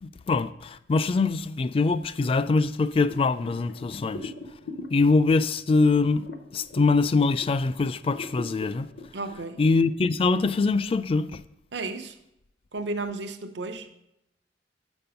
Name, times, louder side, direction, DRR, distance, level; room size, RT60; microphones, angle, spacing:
voice 1, 0.0-4.3 4.9-6.3 6.5-8.9 9.6-11.4, left 3 dB, 30° left, 0.3 m, -23 dB
sound 1, 3.1-7.7 8.0-9.9, left 3 dB, 65° left, 0.7 m, -41 dB
voice 2, 9.1-9.6 11.7-12.2 12.7-13.9, right 3 dB, 85° right, 0.7 m, -33 dB
8.5 x 5.3 x 5.7 m
head